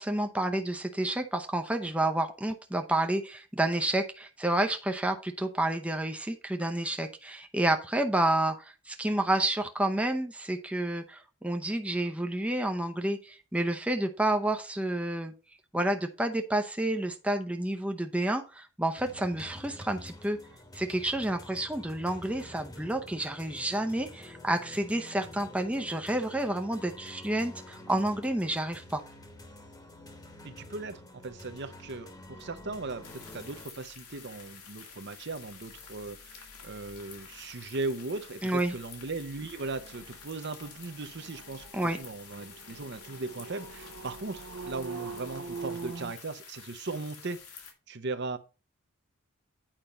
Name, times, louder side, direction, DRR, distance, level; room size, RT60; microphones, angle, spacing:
voice 1, 0.0-15.3 15.7-20.4 20.7-29.0 38.4-38.7 41.7-42.0, right 1 dB, 5° right, 0.6 m, -30 dB
sound 1, 19.0-33.7, left 1 dB, 15° left, 1.1 m, -48 dB
voice 2, 30.4-48.4, right 3 dB, 50° right, 0.7 m, -38 dB
sound 2, 31.3-46.1, right 4 dB, 75° right, 1.1 m, -46 dB
sound 3, 33.0-47.7, left 7 dB, 85° left, 2.1 m, -50 dB
8.9 x 5.2 x 4.2 m
head